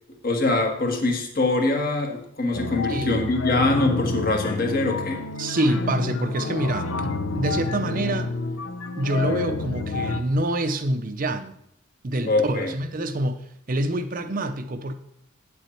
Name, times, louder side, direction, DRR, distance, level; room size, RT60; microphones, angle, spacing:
voice 1, 0.2-5.2 12.2-12.7, left 2 dB, 45° left, 1.5 m, -23 dB
sound 1, 2.5-10.2, left 3 dB, 80° left, 0.7 m, -29 dB
voice 2, 2.9-3.2 5.4-8.3 9.0-11.5 12.0-14.9, right 1 dB, 40° right, 0.5 m, -26 dB
8.4 x 8.0 x 4.4 m
head